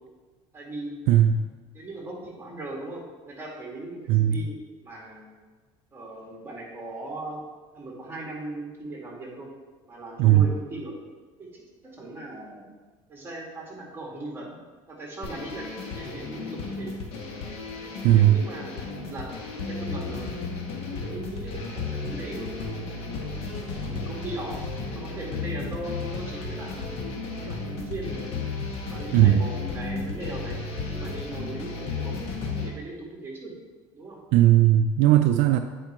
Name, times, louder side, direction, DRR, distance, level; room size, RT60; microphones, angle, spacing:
voice 1, 0.5-1.0 1.7-5.3 5.9-7.4 7.7-9.5 9.9-11.0 11.4-12.6 13.1-14.5 14.9-15.7 15.9-17.0 18.1-20.3 20.9-23.0 23.8-24.6 24.9-28.3 28.8-30.6 30.9-32.2 32.6-33.5 33.9-34.2, right 2 dB, 20° right, -2 dB, 2.0 m, -38 dB
voice 2, 1.1-1.4 4.1-4.4 10.2-10.5 18.0-18.4 29.1-29.4 34.3-35.6, right 12 dB, 65° right, 8 dB, 0.4 m, -17 dB
sound 1, 15.2-32.7, left 4 dB, 55° left, 1.3 m, -34 dB
8.5 x 4.4 x 3.0 m, 1.3 s
supercardioid pair, 105°, 12 cm